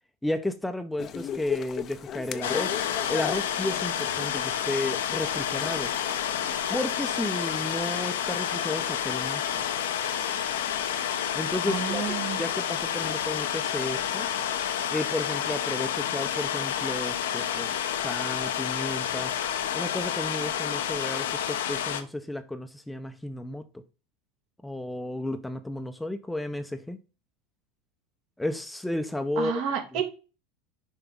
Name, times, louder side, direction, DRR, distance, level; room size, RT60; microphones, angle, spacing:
voice 1, 0.2-2.8 3.1-5.9 6.7-9.6 11.3-12.1 12.4-14.3 14.9-17.7 18.0-19.3 19.7-23.8 24.6-27.0 28.4-29.6, left 1 dB, 5° left, 0.8 m, -33 dB
sound 1, 1.0-6.9, left 9 dB, 40° left, 0.7 m, -37 dB
sound 2, 2.4-22.0, left 9 dB, 75° left, 0.9 m, -29 dB
voice 2, 11.7-12.4 29.4-30.0, right 8 dB, 60° right, 2.4 m, -30 dB
6.8 x 4.8 x 3.7 m
hypercardioid pair, 80°, 0 cm